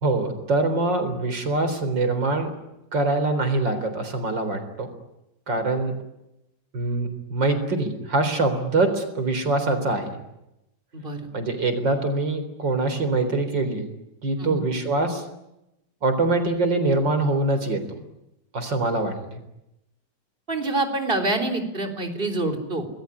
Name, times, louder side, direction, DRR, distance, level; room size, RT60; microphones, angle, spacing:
voice 1, 0.0-2.5 2.9-4.9 5.5-6.0 6.7-10.2 11.3-13.8 14.2-15.2 16.0-18.0 18.5-19.4, right 2 dB, 85° right, 9 dB, 4.6 m, -24 dB
voice 2, 10.9-11.3 14.4-14.6 20.5-22.9, right 2 dB, 30° right, 6 dB, 4.0 m, -26 dB
27.0 x 21.0 x 10.0 m, 0.90 s
omnidirectional pair, 1.9 m